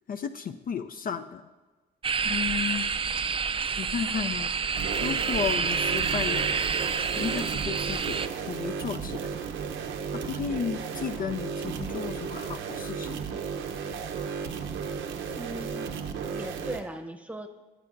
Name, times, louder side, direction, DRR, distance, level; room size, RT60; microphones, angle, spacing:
voice 1, 0.1-1.4 2.2-2.9 3.8-4.5 5.0-6.5 7.2-8.2 8.5-9.3 10.3-13.2, left 7 dB, 45° left, 9 dB, 0.5 m, -33 dB
sound 1, 2.0-8.3, right 5 dB, 25° right, 0.4 m, -28 dB
sound 2, 4.7-16.8, right 6 dB, 75° right, 0.8 m, -34 dB
voice 2, 15.4-15.9 16.3-17.5, right 1 dB, 5° right, 5 dB, 0.8 m, -38 dB
20.0 x 7.8 x 2.6 m, 1.3 s
cardioid pair, 90°, 20 cm